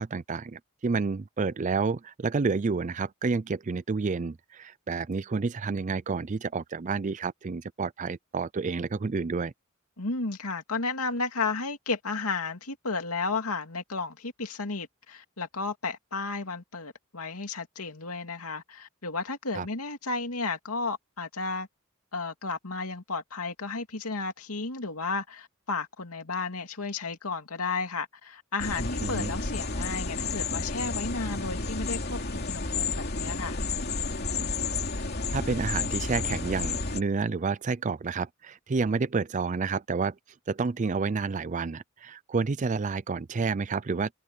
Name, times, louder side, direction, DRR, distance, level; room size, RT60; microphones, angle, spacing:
voice 1, 0.0-9.5 19.5-19.7 29.0-29.3 35.3-40.2 40.5-44.1, right 4 dB, 35° right, 0.4 m, -29 dB
voice 2, 10.0-21.7 22.1-33.6, left 4 dB, 85° left, 2.6 m, -33 dB
sound 1, 28.6-37.0, left 3 dB, 50° left, 2.9 m, -31 dB
head